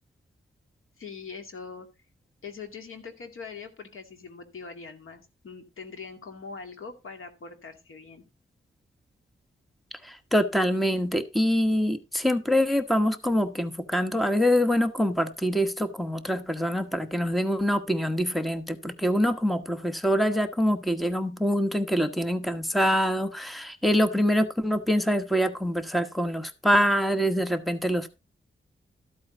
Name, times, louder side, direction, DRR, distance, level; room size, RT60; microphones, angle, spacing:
voice 1, 1.0-1.9 2.4-8.2, left 5 dB, 80° left, 6 dB, 2.3 m, -42 dB
voice 2, 10.0-28.1, equal, ahead, 9 dB, 1.1 m, -25 dB
13.5 x 8.4 x 3.9 m, 0.26 s
wide cardioid pair, 115°, 21 cm